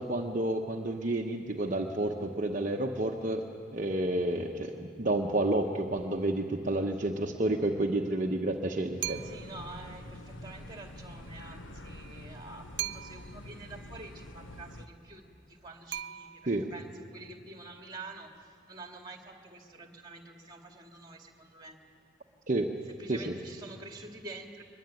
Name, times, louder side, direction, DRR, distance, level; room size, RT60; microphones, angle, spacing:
voice 1, 0.0-3.5 3.7-9.2 16.5-16.7 22.5-22.7 23.1-23.3, right 1 dB, 40° right, 0 dB, 1.0 m, -30 dB
sound 1, 9.0-14.9, left 1 dB, 70° left, 1.2 m, -46 dB
sound 2, 9.0-9.6 12.8-13.5 15.9-16.7, right 13 dB, 60° right, 0.5 m, -38 dB
voice 2, 9.2-21.8 22.9-24.6, right 2 dB, 20° right, 3 dB, 2.2 m, -47 dB
23.0 x 21.5 x 9.2 m, 2.3 s
head